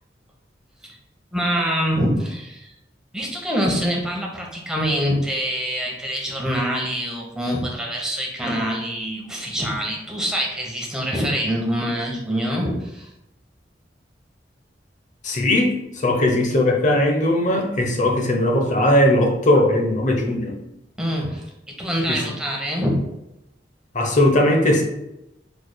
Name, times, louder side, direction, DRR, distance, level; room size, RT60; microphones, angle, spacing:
voice 1, 1.3-2.7 3.1-13.1 21.0-21.4 21.8-23.0, equal, 5° right, -2 dB, 0.9 m, -25 dB
voice 2, 15.2-20.5 22.1-22.2 23.9-24.8, left 1 dB, 45° left, 2 dB, 0.8 m, -19 dB
4.8 x 4.7 x 2.2 m, 0.88 s
head